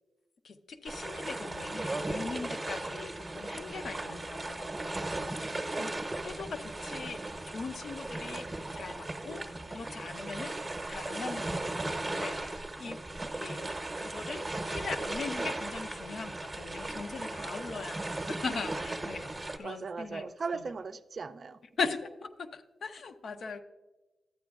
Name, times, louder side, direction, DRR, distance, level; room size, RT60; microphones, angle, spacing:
voice 1, 0.4-5.9 6.2-7.2 7.5-13.0 13.3-20.6 21.8-23.6, left 4 dB, 65° left, 9 dB, 0.6 m, -40 dB
sound 1, 0.9-19.6, right 2 dB, 20° right, 0.8 m, -37 dB
voice 2, 19.6-21.6, right 4 dB, 50° right, 12 dB, 0.4 m, -38 dB
12.5 x 8.6 x 2.3 m, 1.2 s
cardioid pair, 90°, 0 cm